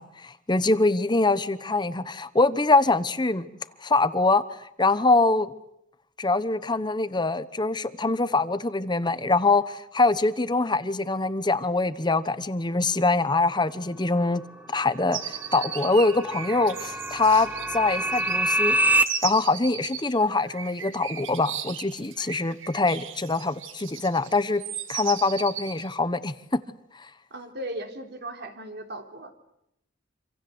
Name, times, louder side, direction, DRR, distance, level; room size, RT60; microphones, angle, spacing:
voice 1, 0.0-3.5 3.8-5.5 6.2-14.4 14.7-18.8 19.2-24.6 24.9-26.6, left 3 dB, 20° left, 1.0 m, -24 dB
sound 1, 14.7-19.0, right 1 dB, 10° right, 1.0 m, -26 dB
sound 2, 15.1-25.9, right 9 dB, 70° right, 2.2 m, -37 dB
voice 2, 27.3-29.3, right 1 dB, 55° right, 3.9 m, -37 dB
27.0 x 27.0 x 8.0 m
head